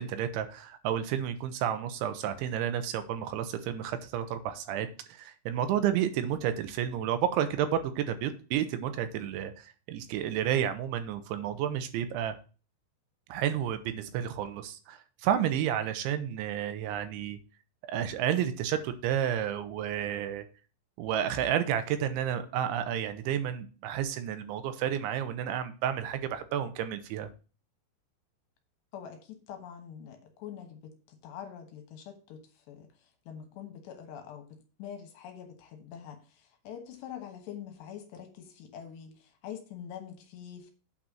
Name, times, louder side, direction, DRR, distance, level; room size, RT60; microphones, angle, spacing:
voice 1, 0.0-12.4 13.3-17.4 17.9-20.4 21.0-27.3, right 10 dB, 85° right, 10 dB, 3.1 m, -31 dB
voice 2, 28.9-32.9 33.3-40.7, left 9 dB, 70° left, 5 dB, 3.1 m, -45 dB
8.8 x 4.2 x 7.3 m, 0.35 s
omnidirectional pair, 5.5 m